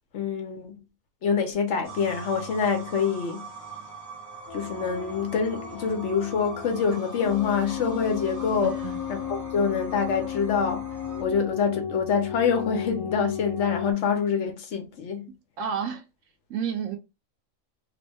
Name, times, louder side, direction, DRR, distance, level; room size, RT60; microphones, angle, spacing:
voice 1, 0.1-0.8 1.2-3.4 4.5-8.8 9.1-10.9 11.2-15.2, left 6 dB, 65° left, 0.9 m, -26 dB
sound 1, 1.8-11.2, right 3 dB, 20° right, 0.6 m, -42 dB
sound 2, 4.5-13.9, left 8 dB, 90° left, 1.0 m, -35 dB
voice 2, 8.6-9.0 15.6-16.0 16.5-17.0, right 7 dB, 70° right, 0.9 m, -30 dB
3.0 x 2.0 x 3.3 m
omnidirectional pair, 1.4 m